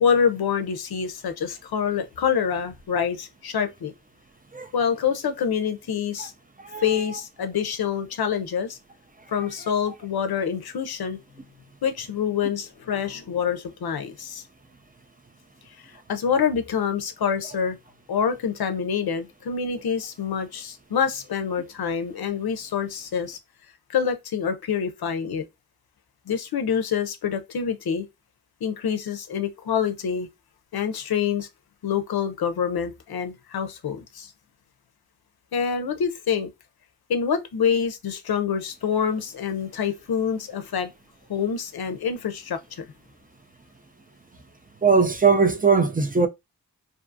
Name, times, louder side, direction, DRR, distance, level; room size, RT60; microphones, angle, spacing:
voice 1, 0.0-3.9 4.7-6.3 6.8-8.8 9.3-11.2 11.8-14.4 16.1-17.8 18.1-23.4 23.9-25.4 26.3-28.1 28.6-30.3 30.7-31.5 31.8-34.3 35.5-36.5 37.1-40.9 41.3-42.9, left 7 dB, 85° left, 0.5 m, -26 dB
voice 2, 6.6-7.2 44.8-46.3, right 5 dB, 25° right, 0.4 m, -20 dB
2.5 x 2.4 x 2.5 m
cardioid pair, 45°, 37 cm